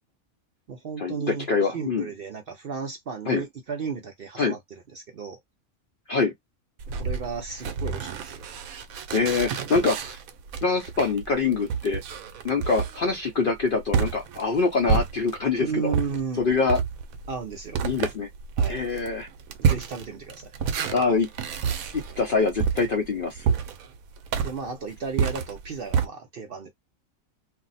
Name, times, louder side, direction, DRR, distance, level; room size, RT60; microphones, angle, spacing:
voice 1, 0.7-5.4 6.9-8.5 15.6-16.4 17.3-17.8 18.6-18.8 19.6-20.5 24.4-26.7, right 5 dB, 55° right, 0.6 m, -34 dB
voice 2, 1.5-2.1 3.3-3.4 4.4-4.5 6.1-6.3 9.1-10.2 10.6-12.0 12.4-15.9 16.4-16.8 17.8-18.3 18.7-19.3 20.9-21.3 21.9-23.5, left 4 dB, 55° left, 0.6 m, -24 dB
sound 1, 6.8-15.5 15.9-26.1, right 6 dB, 85° right, 1.0 m, -29 dB
2.5 x 2.0 x 3.9 m
omnidirectional pair, 1.4 m